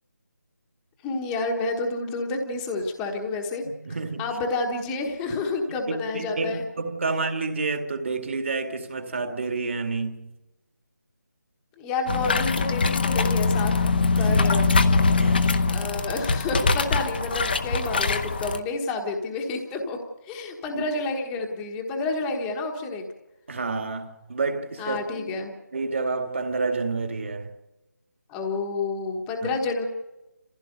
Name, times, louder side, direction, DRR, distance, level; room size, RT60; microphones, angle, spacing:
voice 1, 1.0-3.6 4.2-6.6 11.8-13.7 14.2-14.7 15.6-20.0 20.2-23.0 24.8-25.5 28.3-29.8, left 3 dB, 10° left, 1.2 m, -29 dB
voice 2, 3.6-4.3 6.1-10.3 14.1-15.5 20.7-20.8 23.5-25.3 25.7-27.5 29.4-29.5, right 3 dB, 45° right, 2.2 m, -29 dB
sound 1, 12.1-18.6, left 3 dB, 30° left, 0.8 m, -22 dB
28.5 x 15.5 x 6.7 m
figure-of-eight pair, 170°, 10 cm